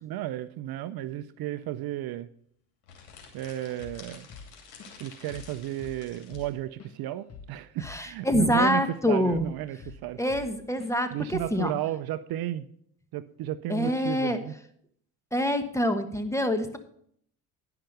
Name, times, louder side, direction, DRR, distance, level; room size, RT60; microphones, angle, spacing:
voice 1, 0.0-2.3 3.3-4.3 5.0-10.2 11.1-12.7 13.1-14.5, right 13 dB, 55° right, 14 dB, 0.6 m, -33 dB
sound 1, 2.8-6.5, left 6 dB, 80° left, 2.7 m, -50 dB
Drum kit / Drum, 3.8-4.0 4.3-5.0 5.3-5.5 5.8-9.0 9.3-10.5 10.8-11.0 11.3-11.6, left 5 dB, 35° left, 1.8 m, -46 dB
voice 2, 7.8-9.5 10.2-11.7 13.7-14.4 15.3-16.8, equal, 5° left, 8 dB, 1.3 m, -26 dB
10.5 x 5.8 x 6.5 m, 0.65 s
supercardioid pair, 80°, 43 cm